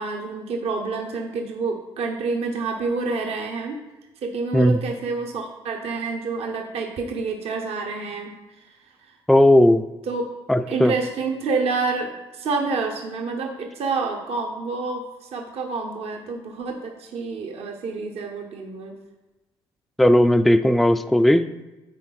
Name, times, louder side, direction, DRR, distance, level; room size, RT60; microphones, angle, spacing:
voice 1, 0.0-3.8 4.2-8.4 8.6-8.8 9.1-9.2 10.1-10.2 10.7-18.9, right 4 dB, 65° right, 2 dB, 0.9 m, -28 dB
voice 2, 9.3-9.8 10.5-10.9 20.0-21.6, left 1 dB, ahead, 10 dB, 0.3 m, -16 dB
9.5 x 4.1 x 4.0 m, 1.1 s
supercardioid pair, 65°, 11 cm